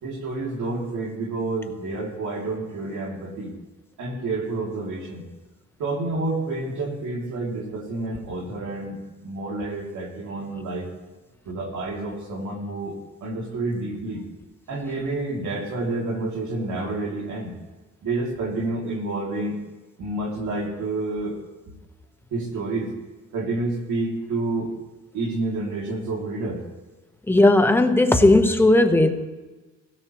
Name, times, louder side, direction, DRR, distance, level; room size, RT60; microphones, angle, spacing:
voice 1, 0.0-3.5 4.0-5.2 5.8-9.0 9.2-10.9 11.5-12.9 13.2-14.2 14.7-17.5 18.0-19.5 20.0-21.4 21.7-21.8 22.3-22.9 23.3-24.7 25.1-26.6, right 2 dB, 70° right, 0 dB, 3.0 m, -29 dB
voice 2, 27.3-29.1, left 2 dB, 5° left, 6 dB, 1.1 m, -16 dB
17.5 x 16.5 x 3.2 m, 1.2 s
cardioid pair, 90°, 30 cm